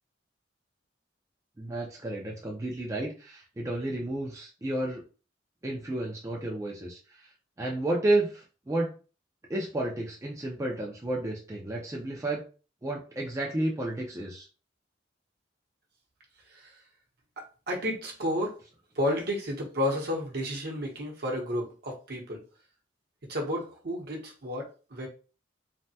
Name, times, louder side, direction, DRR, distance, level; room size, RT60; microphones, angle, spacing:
voice 1, 1.6-5.0 5.6-7.3 7.6-8.9 9.5-12.4 12.8-14.5, right 1 dB, 15° right, -2 dB, 0.4 m, -31 dB
voice 2, 17.4-18.6 18.9-22.4 23.3-25.1, left 1 dB, 55° right, 0 dB, 0.8 m, -32 dB
3.3 x 2.1 x 2.7 m, 0.36 s
head